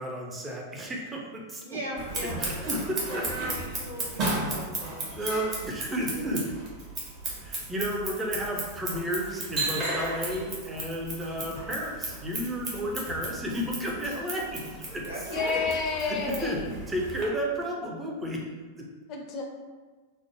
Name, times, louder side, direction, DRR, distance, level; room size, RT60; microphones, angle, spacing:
voice 1, 0.0-1.6 2.4-3.2 5.1-6.4 7.4-15.0 16.0-18.4 18.8-18.9, equal, 15° right, -2 dB, 0.5 m, -32 dB
voice 2, 1.6-2.7 3.1-5.0 5.4-5.8 6.1-6.4 15.0-15.7, right 1 dB, 75° right, -5 dB, 0.8 m, -37 dB
Scissors, 2.0-17.2, right 2 dB, 35° right, 0.8 m, -35 dB
voice 3, 15.3-16.7 19.1-19.4, left 4 dB, 40° left, 1 dB, 0.4 m, -30 dB
3.0 x 2.0 x 2.9 m, 1.3 s
figure-of-eight pair, 90°, 0 cm